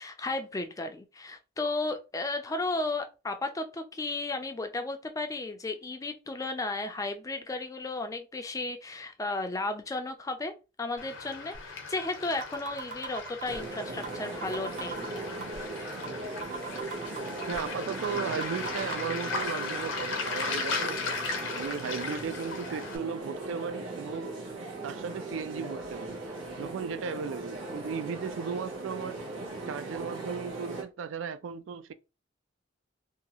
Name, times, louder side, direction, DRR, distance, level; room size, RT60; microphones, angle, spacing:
voice 1, 0.0-10.5 10.8-11.5 11.9-15.1, left 2 dB, 15° left, 0.4 m, -34 dB
Waves surf, 11.0-23.0, left 4 dB, 80° left, 0.7 m, -37 dB
sound 1, 11.5-11.6 12.0-12.1 12.4-13.6 14.0-14.2 14.4-15.6 16.0-16.1 16.4-17.6 18.0-18.1 18.4-19.4, right 5 dB, 45° right, 0.7 m, -39 dB
sound 2, 13.5-30.8, right 2 dB, 90° right, 1.0 m, -39 dB
voice 2, 17.5-21.1 21.5-24.4 24.8-26.2 26.6-29.2 29.7-31.9, right 6 dB, 75° right, 0.3 m, -36 dB
2.7 x 2.3 x 2.9 m
head